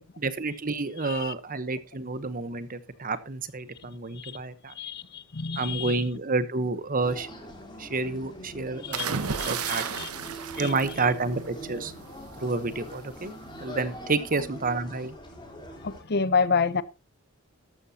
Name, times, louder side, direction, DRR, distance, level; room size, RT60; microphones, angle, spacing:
voice 1, 0.2-4.7 5.6-7.3 7.8-9.8 10.6-11.9 12.4-13.3 13.6-15.1, right 3 dB, 40° right, 1.0 m, -29 dB
voice 2, 1.0-1.3 4.1-4.3 4.8-6.1 8.8-10.1 10.5-10.7 14.3-14.4 15.8-16.8, left 5 dB, 50° left, 0.7 m, -29 dB
sound 1, 7.0-16.0, equal, 20° left, 3.7 m, -43 dB
sound 2, 8.9-11.7 12.9-13.2, right 6 dB, 85° right, 1.0 m, -33 dB
13.5 x 13.0 x 2.9 m
head